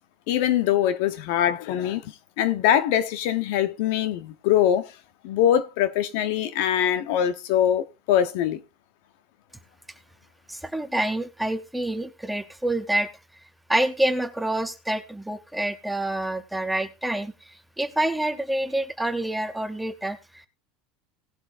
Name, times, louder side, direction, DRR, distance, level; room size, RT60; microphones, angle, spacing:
voice 1, 0.3-4.9 5.2-8.6, left 10 dB, 65° left, 1.0 m, -23 dB
voice 2, 10.5-13.1 13.7-20.5, right 1 dB, 5° right, 0.8 m, -27 dB
18.5 x 7.7 x 2.6 m
cardioid pair, 160°, 0 cm